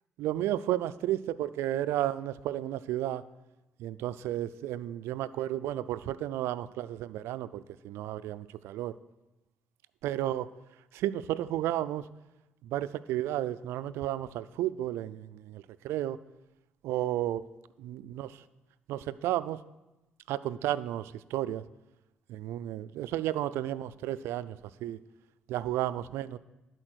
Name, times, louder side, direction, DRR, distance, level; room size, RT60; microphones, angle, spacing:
voice 1, 0.2-3.2 3.8-9.0 10.0-10.5 10.9-12.1 12.6-16.2 16.8-17.4 17.8-18.4 18.9-19.6 20.3-21.6 22.3-25.0 25.5-26.4, right 13 dB, 80° right, 16 dB, 0.3 m, -33 dB
11.0 x 4.4 x 6.2 m, 0.98 s
supercardioid pair, 80°, 4 cm